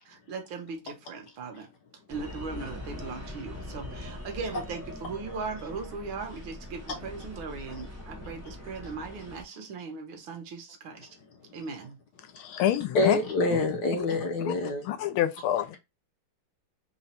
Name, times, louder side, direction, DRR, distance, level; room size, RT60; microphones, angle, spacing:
voice 1, 0.0-1.7 2.1-11.1 11.5-12.0, right 4 dB, 70° right, 1.7 m, -38 dB
sound 1, 2.1-9.4, left 1 dB, 15° right, 0.5 m, -42 dB
voice 2, 12.4-13.2 13.5-13.6 14.0-14.1 14.4-14.5 14.8-15.8, left 12 dB, 80° left, 1.4 m, -27 dB
voice 3, 12.9-14.9, left 2 dB, 65° left, 1.2 m, -26 dB
4.0 x 2.2 x 4.2 m
omnidirectional pair, 2.4 m